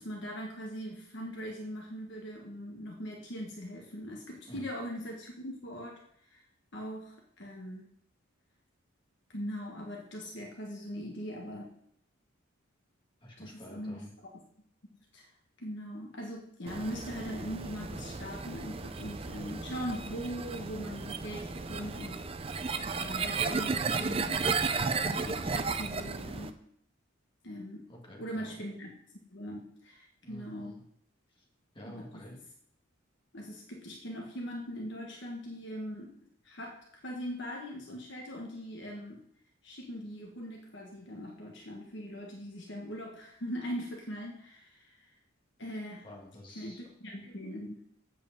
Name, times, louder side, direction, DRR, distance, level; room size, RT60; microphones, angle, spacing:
voice 1, 0.0-6.0 6.3-6.4 6.7-7.8 9.3-11.7 13.4-14.0 15.1-15.2 15.6-22.2 23.0-24.6 25.0-26.5 27.4-27.8 28.2-28.9 29.3-30.8 31.8-32.0 33.3-36.1 36.4-36.8 37.0-39.2 39.6-44.9 45.6-46.0 46.5-47.8, equal, 55° left, 0 dB, 1.5 m, -40 dB
voice 2, 13.2-14.1 27.9-28.6 30.2-30.8 31.3-31.5 31.7-32.4 46.0-46.8, left 1 dB, 25° left, -2 dB, 2.0 m, -49 dB
sound 1, 16.7-26.5, right 4 dB, 25° right, 0.5 m, -34 dB
7.9 x 5.1 x 7.4 m, 0.67 s
head